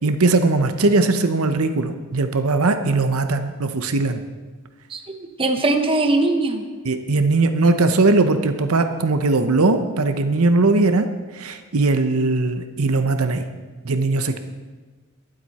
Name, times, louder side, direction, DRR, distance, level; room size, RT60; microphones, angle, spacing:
voice 1, 0.0-4.2 6.8-11.1 11.3-13.4 13.8-14.4, right 3 dB, 70° right, 8 dB, 0.8 m, -19 dB
voice 2, 5.4-6.6, right 2 dB, 25° right, 5 dB, 0.9 m, -20 dB
21.5 x 7.9 x 4.2 m, 1.3 s
head